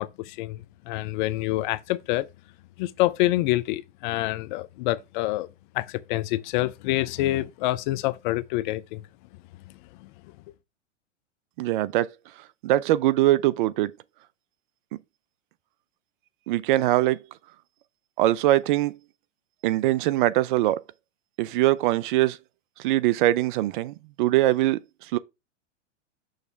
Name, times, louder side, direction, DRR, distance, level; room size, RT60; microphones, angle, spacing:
voice 1, 0.0-2.3 2.8-5.5 5.7-9.0 10.0-10.1, left 17 dB, 40° left, 0.5 m, -27 dB
voice 2, 11.6-12.1 12.6-13.9 16.5-17.2 18.2-18.9 19.6-20.8 21.4-22.4 22.8-24.8 25.1-25.2, right 15 dB, 45° right, 0.5 m, -22 dB
6.5 x 3.2 x 5.9 m
hypercardioid pair, 110°, 36 cm